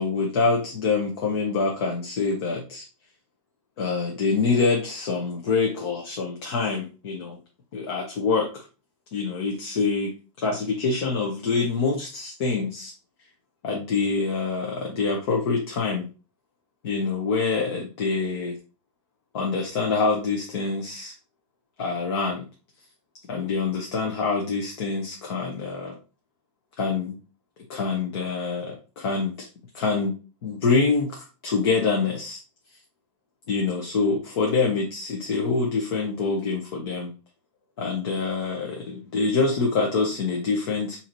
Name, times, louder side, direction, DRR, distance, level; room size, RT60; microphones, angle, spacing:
voice 1, 0.0-2.8 3.8-7.4 7.7-8.6 9.1-10.1 10.4-12.9 13.6-16.0 16.8-18.5 19.3-21.1 21.8-22.4 23.3-25.9 26.8-27.2 27.7-29.5 29.7-30.1 30.4-32.4 33.5-37.1 37.8-41.0, left 4 dB, 50° left, 0 dB, 0.9 m, -25 dB
3.9 x 2.8 x 2.9 m, 0.33 s
supercardioid pair, 170°, 17 cm